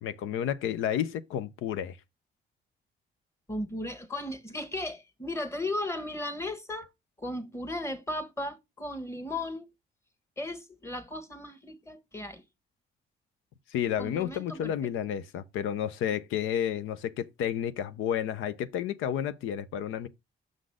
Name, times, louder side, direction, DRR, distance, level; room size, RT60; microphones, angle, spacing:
voice 1, 0.0-2.0 13.7-20.1, left 9 dB, 90° left, 0.6 m, -31 dB
voice 2, 3.5-6.9 7.2-9.6 10.4-12.4 14.0-14.7, left 1 dB, 15° left, 1.5 m, -36 dB
6.5 x 4.0 x 4.8 m
cardioid pair, 90°, 20 cm